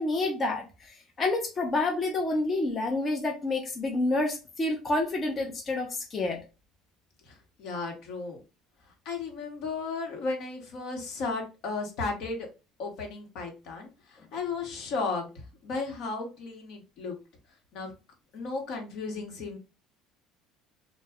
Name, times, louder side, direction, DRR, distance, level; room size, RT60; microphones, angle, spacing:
voice 1, 0.0-6.4, left 2 dB, 30° left, 0.6 m, -28 dB
voice 2, 7.3-8.4 9.0-12.5 12.8-17.2 17.7-17.9 18.3-19.6, left 4 dB, 65° left, 0.9 m, -35 dB
2.3 x 2.0 x 3.4 m
supercardioid pair, 110°, 0 cm